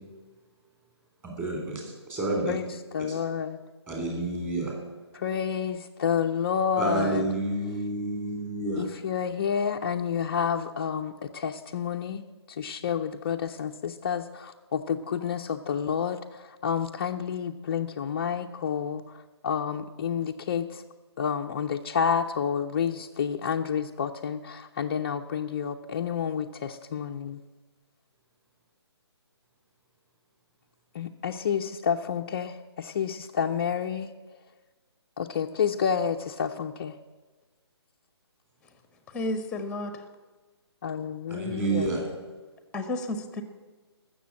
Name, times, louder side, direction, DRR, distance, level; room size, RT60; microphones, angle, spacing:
voice 1, 1.2-1.8 2.1-2.6 3.1-3.2 3.9-4.7 6.8-8.8 41.3-42.0, right 2 dB, 15° right, 0 dB, 3.1 m, -29 dB
voice 2, 2.9-3.6 5.1-7.2 8.8-20.8 21.2-27.4 30.9-34.1 35.2-37.0 40.8-41.9, left 7 dB, 30° left, 0 dB, 0.5 m, -29 dB
voice 3, 39.1-40.1 42.7-43.4, left 1 dB, 5° left, 9 dB, 0.9 m, -31 dB
14.0 x 6.7 x 8.6 m, 1.3 s
figure-of-eight pair, 140°, 14 cm